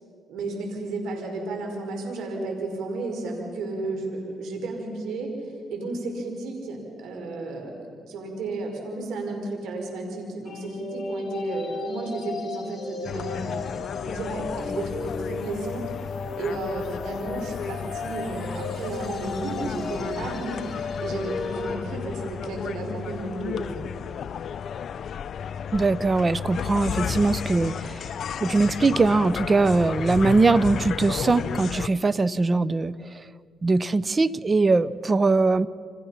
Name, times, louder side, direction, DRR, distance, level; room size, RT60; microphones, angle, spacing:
voice 1, 0.3-5.4 5.7-13.7 14.1-15.9 16.4-20.6 21.0-23.7, right 2 dB, 85° right, 2 dB, 5.2 m, -33 dB
sound 1, 10.5-21.8, left 3 dB, 35° left, 7.0 m, -35 dB
sound 2, 13.0-31.9, left 7 dB, 60° left, 0.6 m, -33 dB
voice 2, 25.7-28.0 28.4-33.2 33.6-35.7, right 3 dB, 30° right, 18 dB, 0.7 m, -21 dB
29.5 x 26.5 x 5.9 m, 2.2 s
cardioid pair, 90°, 0 cm